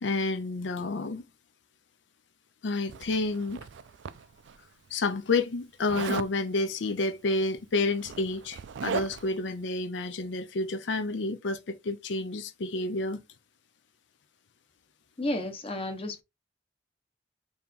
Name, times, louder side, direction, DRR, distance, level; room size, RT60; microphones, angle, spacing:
voice 1, 0.0-1.2 2.6-3.7 4.9-13.2, left 3 dB, 90° left, 0.5 m, -30 dB
Zipper (clothing), 2.9-4.6 5.9-6.4 7.5-7.6 7.9-9.4, right 6 dB, 85° right, 0.4 m, -37 dB
voice 2, 15.2-16.2, left 1 dB, 35° left, 0.9 m, -32 dB
4.2 x 2.8 x 3.5 m
head